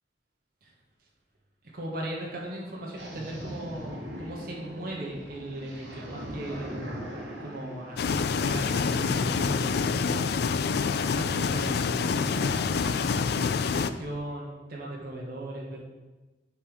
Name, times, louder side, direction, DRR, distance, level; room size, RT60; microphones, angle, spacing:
voice 1, 1.7-6.9 7.4-10.3 11.1-12.6 13.7-15.8, right 1 dB, 50° right, -3 dB, 1.4 m, -38 dB
sound 1, 3.0-13.8, equal, 75° right, 2.0 m, -40 dB
sound 2, 8.0-13.9, left 5 dB, 55° left, 0.4 m, -27 dB
8.4 x 3.7 x 6.3 m, 1.2 s
head